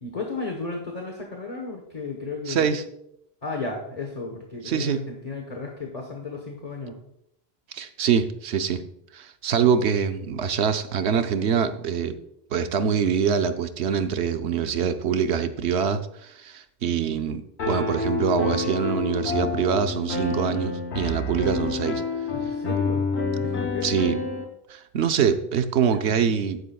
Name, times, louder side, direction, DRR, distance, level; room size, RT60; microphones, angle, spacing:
voice 1, 0.0-2.8 3.4-7.0 22.3-23.1 23.4-23.9 26.1-26.3, left 3 dB, 40° left, 1 dB, 1.2 m, -34 dB
voice 2, 2.5-2.8 4.6-5.0 7.7-8.8 9.1-12.2 12.5-22.0 23.8-24.2 24.7-26.6, right 7 dB, 85° right, 9 dB, 1.0 m, -24 dB
Piano, 17.6-24.4, left 4 dB, 80° left, 1.4 m, -28 dB
11.0 x 9.7 x 2.3 m, 0.75 s
omnidirectional pair, 1.1 m